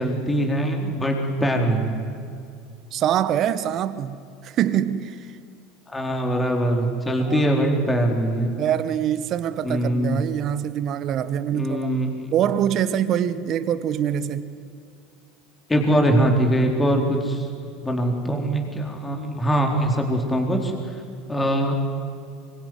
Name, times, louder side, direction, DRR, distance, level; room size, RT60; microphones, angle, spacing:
voice 1, 0.0-2.0 5.9-8.8 9.6-10.2 11.5-12.3 15.7-17.5 17.8-21.0 21.3-21.8, right 1 dB, 15° left, 2 dB, 4.2 m, -22 dB
voice 2, 2.9-5.4 7.2-7.5 8.6-11.9 12.3-14.5, right 10 dB, 50° right, 13 dB, 1.5 m, -24 dB
24.5 x 24.0 x 9.5 m, 2.4 s
hypercardioid pair, 80°, 0 cm